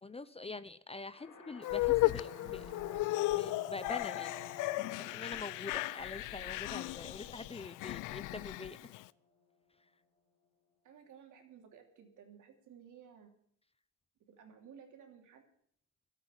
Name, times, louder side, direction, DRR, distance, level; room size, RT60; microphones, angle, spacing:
voice 1, 0.0-2.6 3.4-4.3 5.0-8.9, left 3 dB, 20° left, 15 dB, 0.6 m, -45 dB
sound 1, 1.1-9.0, left 3 dB, 70° left, 3.5 m, -52 dB
sound 2, 1.6-9.0, left 19 dB, 90° left, 0.5 m, -35 dB
voice 2, 1.8-2.6 10.8-13.3 14.3-15.4, right 7 dB, 75° right, 4 dB, 3.0 m, -56 dB
13.0 x 8.3 x 8.9 m, 0.63 s
cardioid pair, 90°, 30 cm